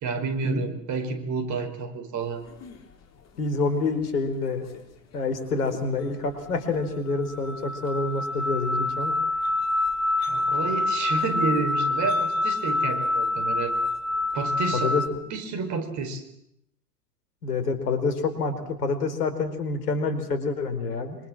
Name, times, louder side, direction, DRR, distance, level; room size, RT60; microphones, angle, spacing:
voice 1, 0.0-2.4 10.3-13.7 14.3-14.9 15.3-16.2, right 4 dB, 35° right, 9 dB, 4.7 m, -30 dB
sound 1, 2.5-2.7 3.8-4.0 4.7-4.8 5.7-5.8 6.8-6.9 7.1-15.1, left 2 dB, 30° left, 4.5 m, -26 dB
voice 2, 3.4-4.7 5.1-9.2 14.7-15.2 17.4-21.2, left 3 dB, 70° left, 9 dB, 4.6 m, -27 dB
26.0 x 25.5 x 7.6 m, 0.76 s
figure-of-eight pair, 95°, 48 cm